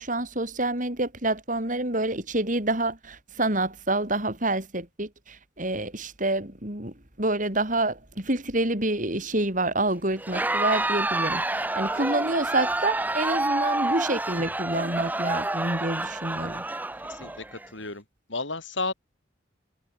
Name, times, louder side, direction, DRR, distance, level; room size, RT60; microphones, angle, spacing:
voice 1, 0.0-16.6, right 2 dB, 40° right, 5.4 m, -28 dB
Crowd, 10.2-17.7, right 2 dB, 10° right, 0.7 m, -28 dB
voice 2, 17.1-18.0 18.3-18.9, left 3 dB, 75° left, 6.8 m, -32 dB
head